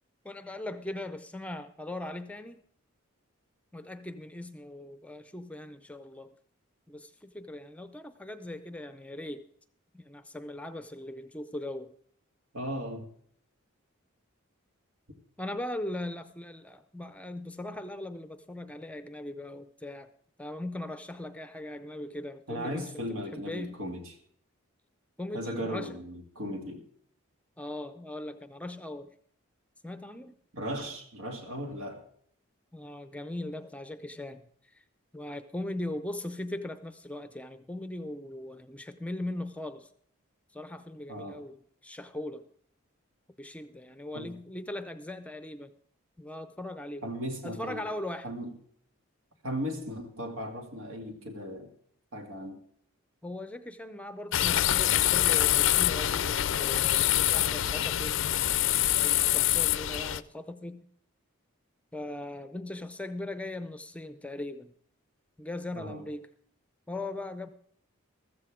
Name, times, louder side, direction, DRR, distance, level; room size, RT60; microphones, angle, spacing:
voice 1, 0.2-2.6 3.7-6.3 6.9-9.5 9.9-11.9 15.4-20.1 20.4-22.9 23.3-23.8 25.2-26.0 27.6-29.2 29.8-30.3 32.7-34.8 35.1-39.9 40.5-41.6 41.8-42.5 43.4-45.7 46.2-47.0 47.4-48.3 53.2-58.2 59.0-60.9 61.9-64.7 65.4-66.3 66.9-67.5, left 1 dB, 5° left, 0.5 m, -39 dB
voice 2, 12.5-13.1 22.5-24.1 25.3-26.8 30.5-32.0 41.1-41.4 44.1-44.4 47.0-47.9 48.2-48.6 49.4-51.7 52.1-52.6 65.8-66.0, equal, 90° right, 2.4 m, -37 dB
Joggers at Moraine Hills State Park, 54.3-60.2, left 12 dB, 60° left, 0.4 m, -25 dB
14.5 x 14.0 x 3.7 m
head